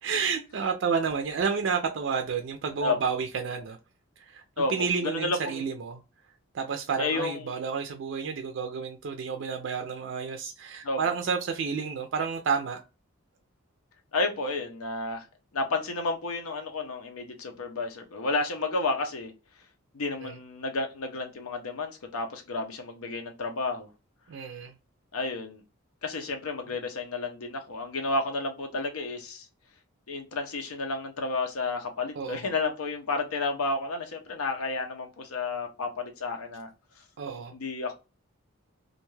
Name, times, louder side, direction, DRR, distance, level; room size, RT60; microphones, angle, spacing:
voice 1, 0.0-3.8 4.3-6.0 6.5-12.8 20.2-20.4 24.3-24.7 32.2-32.5 37.2-37.5, right 5 dB, 60° right, 0.4 m, -30 dB
voice 2, 4.6-5.6 7.0-7.4 10.8-11.0 14.1-15.3 15.5-19.3 19.9-23.9 25.1-25.6 26.0-29.5 30.1-36.7 37.5-37.9, left 3 dB, 90° left, 0.6 m, -31 dB
2.5 x 2.2 x 3.1 m
head